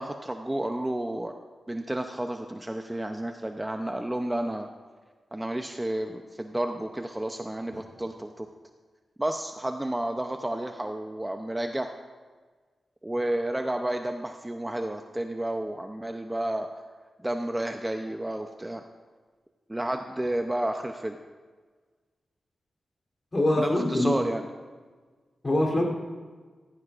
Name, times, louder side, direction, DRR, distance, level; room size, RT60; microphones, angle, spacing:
voice 1, 0.0-1.3 1.7-4.7 5.3-8.5 9.2-11.9 13.0-16.7 17.2-18.8 19.7-21.2 23.6-24.4, right 1 dB, 10° right, 5 dB, 0.6 m, -31 dB
voice 2, 23.3-24.2 25.4-25.8, left 1 dB, 30° left, -1 dB, 3.2 m, -24 dB
16.0 x 14.5 x 2.5 m, 1.5 s
wide cardioid pair, 110°, 0 cm